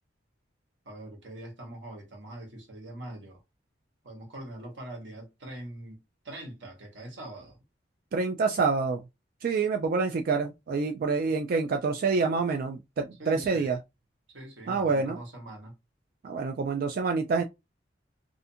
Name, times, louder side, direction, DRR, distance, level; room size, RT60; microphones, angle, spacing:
voice 1, 0.8-3.4 4.0-6.0 6.2-7.6 13.2-13.7 14.3-15.7, right 1 dB, 85° right, 1.1 m, -43 dB
voice 2, 8.1-9.0 9.4-13.8 14.7-15.2 16.2-17.4, right 4 dB, 50° right, 0.3 m, -27 dB
2.5 x 2.4 x 2.6 m
head